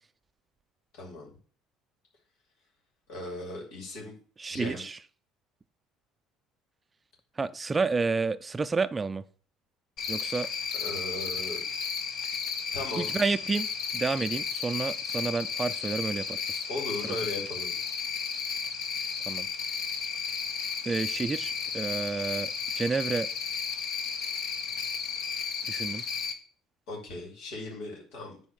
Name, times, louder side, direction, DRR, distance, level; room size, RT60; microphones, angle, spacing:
voice 1, 0.9-1.3 3.1-4.1 4.5-4.8 10.7-11.6 12.7-13.2 16.7-17.7 26.9-28.5, left 2 dB, 80° left, 2.9 m, -37 dB
voice 2, 4.4-5.0 7.4-9.2 10.1-10.5 13.0-13.7 13.9-16.7 19.3-19.5 20.8-23.3 25.7-26.0, right 4 dB, 25° right, 0.4 m, -30 dB
Cricket, 10.0-26.3, left 6 dB, 65° left, 1.3 m, -33 dB
8.3 x 3.5 x 6.4 m
supercardioid pair, 95°, 0 cm